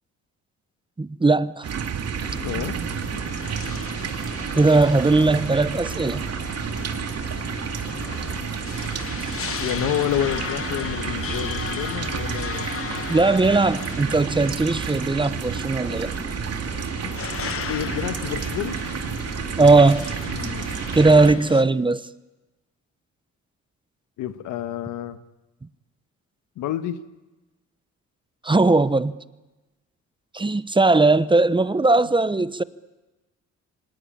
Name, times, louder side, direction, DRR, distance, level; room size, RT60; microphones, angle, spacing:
voice 1, 1.0-1.7 4.5-6.2 13.1-16.1 19.6-20.1 20.9-22.0 28.4-29.1 30.3-32.6, right 3 dB, 15° right, 0.9 m, -18 dB
sound 1, 1.6-21.3, right 7 dB, 55° right, 2.4 m, -30 dB
sound 2, 2.2-21.6, left 8 dB, 45° left, 1.1 m, -36 dB
voice 2, 2.4-2.8 9.6-12.7 17.0-17.4 17.6-18.8 20.3-20.7 24.2-25.2 26.6-27.0, left 11 dB, 90° left, 1.5 m, -29 dB
25.0 x 19.5 x 8.7 m
cardioid pair, 90°, 30 cm